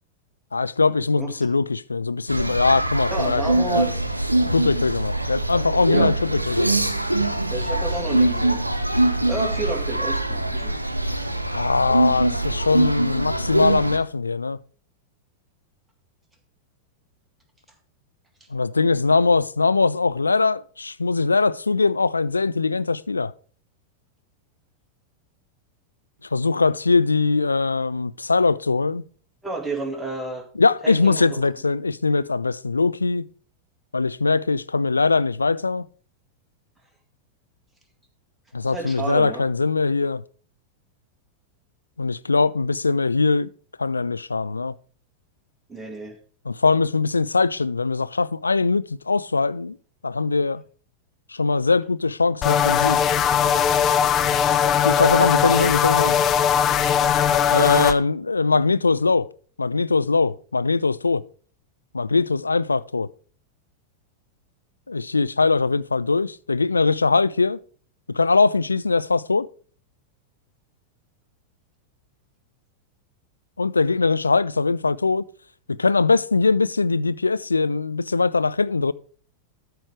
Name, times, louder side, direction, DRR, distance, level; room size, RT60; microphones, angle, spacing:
voice 1, 0.5-3.8 4.5-6.8 11.5-14.6 18.5-23.3 26.3-29.0 30.6-33.3 33.9-35.9 38.5-40.2 42.0-43.5 43.8-44.7 46.5-49.8 50.0-50.6 51.3-53.0 54.8-56.2 57.5-59.3 59.6-61.2 61.9-63.1 64.9-67.6 68.1-69.5 73.6-75.3 75.8-78.9, left 4 dB, 80° left, 0.3 m, -21 dB
sound 1, 2.3-14.0, right 1 dB, 85° right, 0.7 m, -23 dB
voice 2, 3.1-3.9 5.9-6.2 7.5-8.6 9.3-10.7 29.4-30.4 30.8-31.5 38.7-39.4 45.7-46.2, right 3 dB, 5° right, 2.0 m, -30 dB
sound 2, 52.4-57.9, left 8 dB, 30° left, 0.5 m, -19 dB
12.5 x 4.7 x 4.8 m
figure-of-eight pair, 90°, 0 cm